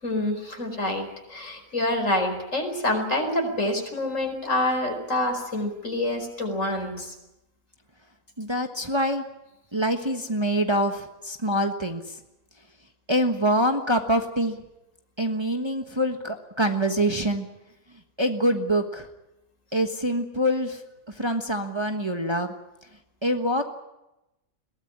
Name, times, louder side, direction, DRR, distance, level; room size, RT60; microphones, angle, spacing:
voice 1, 0.0-7.1, left 1 dB, 65° left, 4 dB, 5.2 m, -27 dB
voice 2, 8.4-9.2 9.7-12.0 13.1-14.6 15.2-17.5 18.2-19.1 19.7-20.8 21.2-22.5 23.2-23.6, equal, 20° right, 4 dB, 1.4 m, -25 dB
22.0 x 18.0 x 9.7 m, 0.93 s
omnidirectional pair, 1.4 m